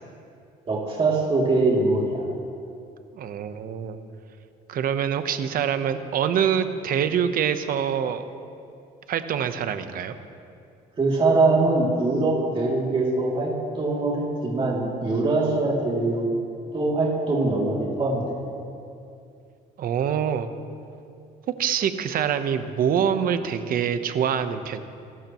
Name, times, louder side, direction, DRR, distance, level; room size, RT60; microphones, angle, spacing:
voice 1, 0.7-2.2 11.0-16.3 16.7-18.2, right 2 dB, 30° right, -4 dB, 2.7 m, -23 dB
voice 2, 3.1-4.0 4.7-8.2 9.1-10.2 19.8-20.5 21.6-24.8, right 8 dB, 60° right, 10 dB, 0.9 m, -25 dB
27.5 x 12.5 x 3.1 m, 2.5 s
cardioid pair, 110°, 17 cm